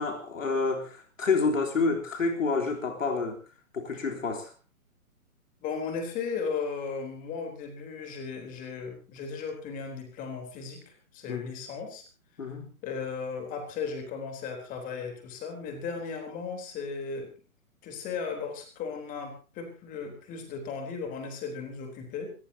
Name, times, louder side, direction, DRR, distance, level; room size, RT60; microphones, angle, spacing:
voice 1, 0.0-3.4 3.7-4.5 11.3-11.5 12.4-12.7, left 4 dB, 60° left, 3.6 m, -28 dB
voice 2, 5.6-12.0 12.8-17.3 17.8-22.3, left 5 dB, 20° left, 3.8 m, -36 dB
27.0 x 15.0 x 2.8 m
figure-of-eight pair, 135°, 44 cm